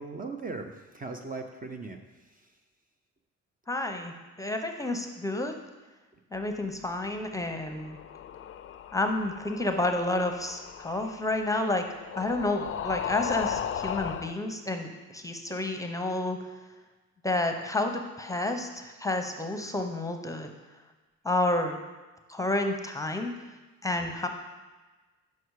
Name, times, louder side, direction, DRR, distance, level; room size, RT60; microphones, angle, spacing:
voice 1, 0.0-2.5, right 3 dB, 30° right, 5 dB, 0.7 m, -39 dB
voice 2, 3.7-5.5 6.3-8.0 8.9-11.9 12.1-16.4 17.2-20.5 21.2-21.8 22.3-23.3 23.8-24.3, left 2 dB, 10° left, 5 dB, 0.8 m, -30 dB
sound 1, 7.6-14.3, left 9 dB, 45° left, 0.4 m, -37 dB
7.9 x 5.8 x 4.8 m, 1.2 s
cardioid pair, 90°, 30 cm